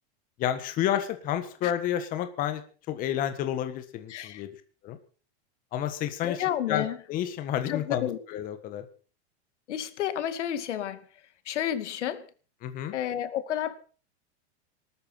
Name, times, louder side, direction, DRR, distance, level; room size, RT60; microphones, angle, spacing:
voice 1, 0.4-2.6 2.9-4.5 4.8-5.0 5.7-6.4 6.7-8.8 12.6-12.9, left 10 dB, 25° left, 9 dB, 1.6 m, -30 dB
voice 2, 4.1-4.4 6.2-7.0 7.7-8.2 9.7-11.0 11.5-12.2 12.9-13.8, left 10 dB, 85° left, 12 dB, 2.3 m, -30 dB
19.5 x 13.0 x 5.7 m, 0.40 s
supercardioid pair, 170°, 34 cm